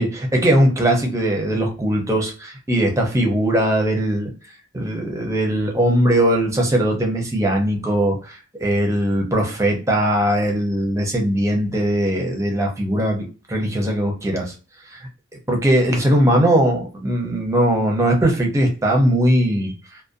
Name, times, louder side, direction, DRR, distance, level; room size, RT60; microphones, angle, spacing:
voice 1, 0.0-4.3 4.7-14.5 14.9-15.0 15.5-19.7, right 1 dB, 15° right, 1 dB, 0.5 m, -20 dB
2.5 x 2.1 x 2.4 m, 0.36 s
head